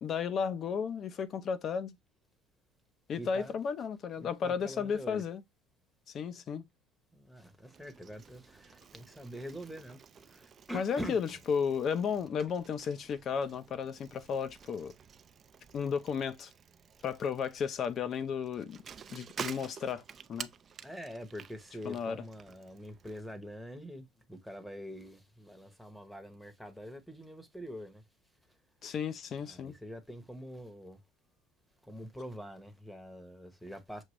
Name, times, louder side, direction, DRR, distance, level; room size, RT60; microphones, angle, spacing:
voice 1, 0.0-1.9 3.1-5.4 6.1-6.6 10.7-14.9 15.7-16.5 17.0-18.8 19.1-20.0 20.3-20.5 21.8-22.2 28.8-29.7, left 6 dB, 40° left, 0.6 m, -33 dB
voice 2, 3.2-3.6 4.2-5.2 7.1-11.2 20.8-28.0 29.4-31.0 31.8-34.0, equal, ahead, 0.9 m, -45 dB
Bicycle, 7.7-23.2, right 7 dB, 35° right, 0.4 m, -50 dB
6.2 x 2.5 x 3.0 m
cardioid pair, 125°, 0 cm